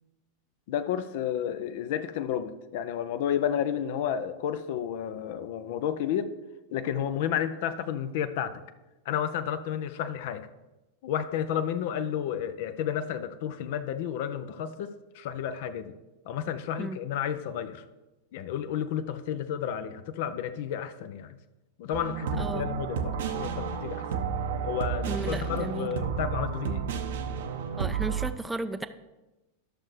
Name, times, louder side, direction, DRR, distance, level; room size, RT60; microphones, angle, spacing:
voice 1, 0.7-6.3 6.7-8.6 9.1-10.5 11.0-15.9 16.3-17.8 18.3-21.4 21.8-24.1 24.6-26.8, left 9 dB, 50° left, 12 dB, 0.5 m, -31 dB
sound 1, 21.9-28.3, right 7 dB, 55° right, 0.7 m, -31 dB
voice 2, 22.4-22.7 25.0-25.9 27.8-28.9, right 2 dB, 5° right, 10 dB, 0.4 m, -34 dB
13.0 x 6.3 x 3.2 m, 1.0 s
figure-of-eight pair, 90°, 0 cm